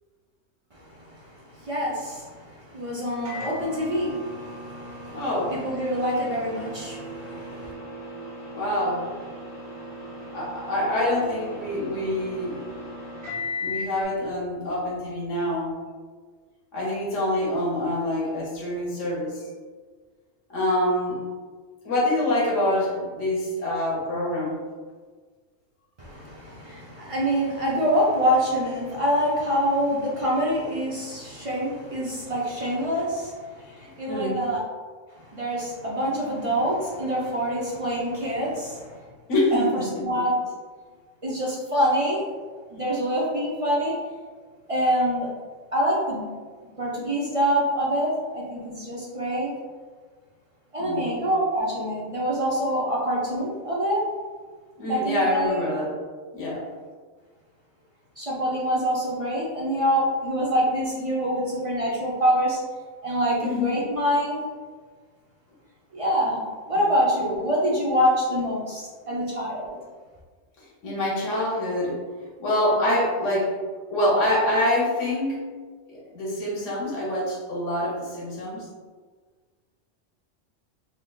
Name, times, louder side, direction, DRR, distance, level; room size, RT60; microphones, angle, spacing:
voice 1, 0.7-5.2 5.5-7.7 26.0-34.6 35.1-39.0 39.5-40.3 41.2-42.2 42.7-43.9 44.7-45.3 45.7-46.3 46.8-49.5 50.7-54.0 54.8-55.7 58.2-62.6 63.0-64.4 65.9-66.4 66.7-69.8, equal, 50° right, -5 dB, 0.4 m, -26 dB
Microwave oven, 3.3-14.0, left 1 dB, 70° right, 1.4 m, -38 dB
voice 2, 5.1-5.5 8.5-9.0 10.3-12.6 13.6-15.7 16.7-19.5 20.5-21.2 21.8-24.5 34.1-34.4 39.3-40.0 50.8-51.1 54.8-55.9 56.3-56.6 63.4-63.8 69.0-69.1 70.6-72.0 72.4-73.6 73.9-75.4 75.9-78.7, left 1 dB, 90° left, -5 dB, 1.2 m, -25 dB
3.5 x 2.4 x 2.2 m, 1.5 s
omnidirectional pair, 1.2 m